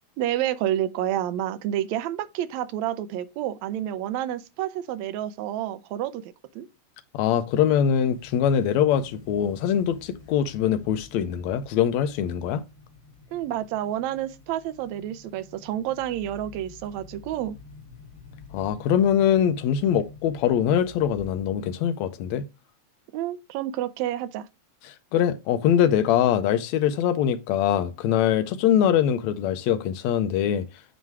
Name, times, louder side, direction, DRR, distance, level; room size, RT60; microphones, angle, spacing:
voice 1, 0.2-6.7 13.3-17.6 23.1-24.5, right 12 dB, 80° right, 1.8 m, -29 dB
voice 2, 7.1-12.6 18.5-22.4 24.9-30.6, left 9 dB, 80° left, 1.8 m, -23 dB
sound 1, 7.5-21.8, left 4 dB, 40° left, 2.0 m, -49 dB
9.1 x 3.0 x 4.7 m
omnidirectional pair, 3.5 m